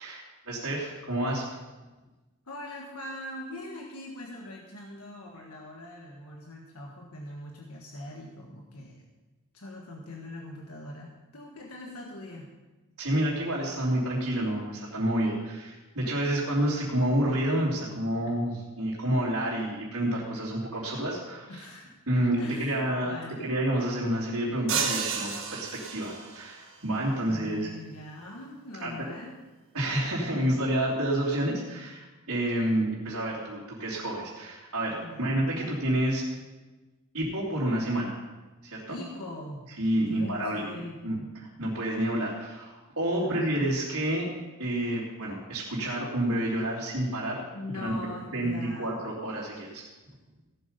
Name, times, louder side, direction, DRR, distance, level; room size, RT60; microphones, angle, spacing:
voice 1, 0.0-1.4 13.0-21.6 22.1-23.1 23.4-27.7 28.8-28.9 29.7-36.2 37.1-38.2 38.6-39.0 39.8-41.1 41.6-44.3 44.6-47.4 47.7-47.9 48.3-49.8, right 1 dB, 80° right, -8 dB, 2.9 m, -29 dB
voice 2, 2.4-9.0 9.5-12.5 21.5-21.9 22.4-23.6 27.0-29.4 35.0-35.8 38.9-39.6 40.0-41.3 43.1-43.5 47.5-48.9, left 1 dB, 85° left, 0 dB, 1.5 m, -42 dB
sound 1, 24.7-26.5, right 6 dB, 65° right, 1.7 m, -31 dB
16.5 x 8.0 x 5.2 m, 1.2 s
head